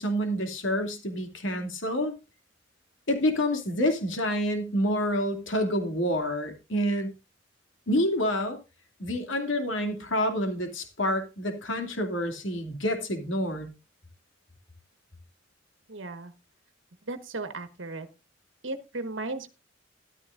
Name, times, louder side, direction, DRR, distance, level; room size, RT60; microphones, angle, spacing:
voice 1, 0.0-2.2 3.1-7.1 7.9-8.6 9.0-13.7, equal, 80° left, 6 dB, 2.6 m, -28 dB
voice 2, 15.9-16.3 17.1-18.1 18.6-19.5, right 2 dB, 80° right, 10 dB, 1.3 m, -35 dB
13.5 x 12.0 x 2.5 m, 0.28 s
head